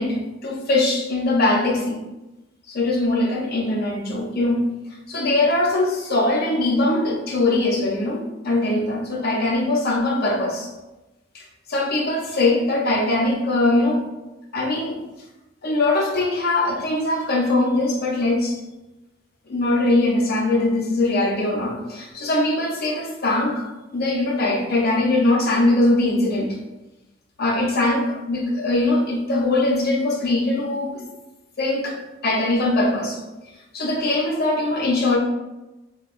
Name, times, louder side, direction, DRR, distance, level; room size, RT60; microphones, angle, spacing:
voice 1, 0.0-2.0 2.7-4.7 5.1-10.7 11.3-14.0 14.5-15.0 15.6-18.6 19.5-26.6 27.4-30.9 31.6-33.2 33.7-35.2, left 2 dB, 50° left, -1 dB, 0.7 m, -21 dB
5.5 x 2.3 x 2.5 m, 1.0 s
head